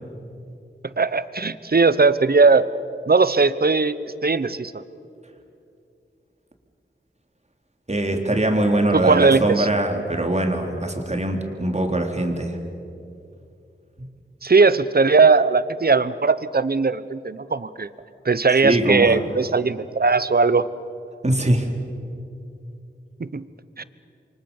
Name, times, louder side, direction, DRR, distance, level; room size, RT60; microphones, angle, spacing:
voice 1, 0.8-2.6 3.1-3.9 4.2-4.7 8.9-9.7 14.4-17.9 18.2-20.6 23.2-23.5 23.8-23.9, right 4 dB, 50° right, 15 dB, 1.0 m, -18 dB
voice 2, 7.9-12.6 14.0-14.1 18.6-19.2 21.2-21.7, right 1 dB, 35° right, 3 dB, 3.8 m, -22 dB
28.5 x 24.0 x 7.2 m, 2.6 s
cardioid pair, 40°, 21 cm